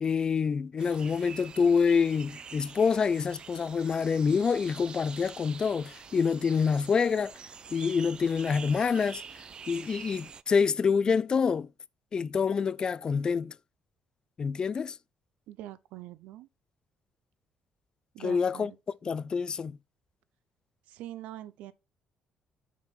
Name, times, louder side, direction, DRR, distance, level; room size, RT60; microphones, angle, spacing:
voice 1, 0.0-7.3 7.7-9.2 9.7-11.7 12.1-13.5 14.4-15.0 18.2-18.7 19.0-19.8, left 5 dB, 35° left, 0.3 m, -26 dB
sound 1, 0.8-10.4, right 6 dB, 40° right, 0.4 m, -46 dB
voice 2, 15.5-16.5 18.1-18.8 20.9-21.7, right 13 dB, 90° right, 0.6 m, -43 dB
6.1 x 4.4 x 5.7 m
cardioid pair, 100°, 2 cm